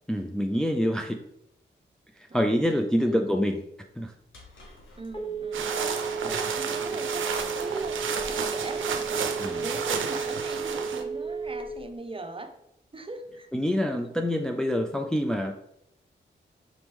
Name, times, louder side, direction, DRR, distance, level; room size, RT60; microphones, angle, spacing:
voice 1, 0.1-1.2 2.2-3.6 4.0-4.1 9.4-9.7 13.5-15.5, equal, 5° left, 4 dB, 0.4 m, -26 dB
voice 2, 2.3-3.4 5.0-5.9 6.2-7.3 7.5-12.6 12.9-13.5, right 2 dB, 25° right, 6 dB, 0.8 m, -40 dB
sound 1, 4.3-9.9, equal, 80° left, 1.1 m, -52 dB
Telephone, 4.6-11.9, right 5 dB, 25° left, 0.8 m, -33 dB
sound 2, 5.5-11.0, right 6 dB, 75° right, 0.6 m, -32 dB
5.2 x 2.9 x 3.4 m, 0.78 s
supercardioid pair, 40°, 20 cm